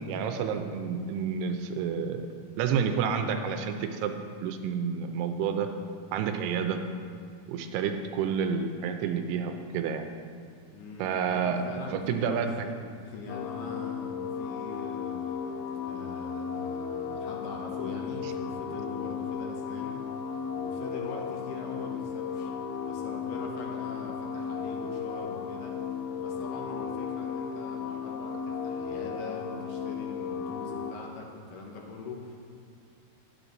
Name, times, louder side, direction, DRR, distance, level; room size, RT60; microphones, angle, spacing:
voice 1, 0.1-2.2 2.6-4.1 4.4-5.7 6.1-6.8 7.5-10.1 11.0-11.6 11.9-12.7, right 7 dB, 85° right, 6 dB, 2.7 m, -29 dB
voice 2, 10.7-15.6 15.9-20.3 20.6-22.5 22.8-25.8 26.2-32.4, left 3 dB, 65° left, 0 dB, 2.4 m, -42 dB
sound 1, 13.3-30.9, left 6 dB, 85° left, 2.5 m, -35 dB
10.0 x 9.9 x 4.0 m, 2.3 s
omnidirectional pair, 4.7 m